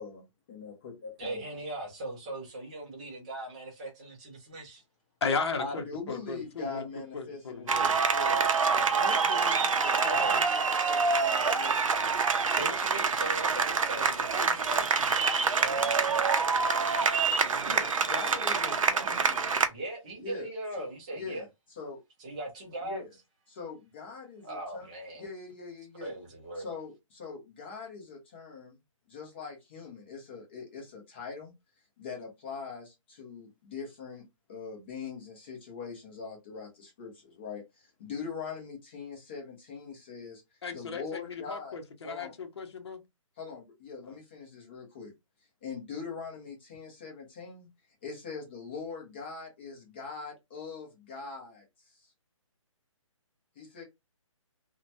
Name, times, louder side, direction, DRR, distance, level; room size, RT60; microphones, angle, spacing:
voice 1, 0.0-1.4 5.6-11.8 17.6-19.5 20.2-20.5 20.8-20.9 21.1-21.5 21.8-22.0 22.8-23.1 23.5-24.9 25.2-26.1 26.6-28.8 29.1-31.5 32.0-34.2 34.5-40.4 40.7-41.8 42.0-42.3 43.4-45.1 45.6-47.7 48.0-52.1 53.6-53.8, left 5 dB, 20° left, 0.7 m, -42 dB
voice 2, 1.2-4.8 9.1-10.4 12.6-16.5 19.7-21.4 22.2-23.0 24.4-25.3 26.0-26.7, right 1 dB, 15° right, 0.6 m, -39 dB
voice 3, 5.2-8.0 40.6-43.0 44.0-44.2, left 4 dB, 55° left, 0.8 m, -35 dB
sound 1, 7.7-19.7, right 5 dB, 75° right, 0.6 m, -26 dB
2.8 x 2.2 x 2.6 m
hypercardioid pair, 170°, 17 cm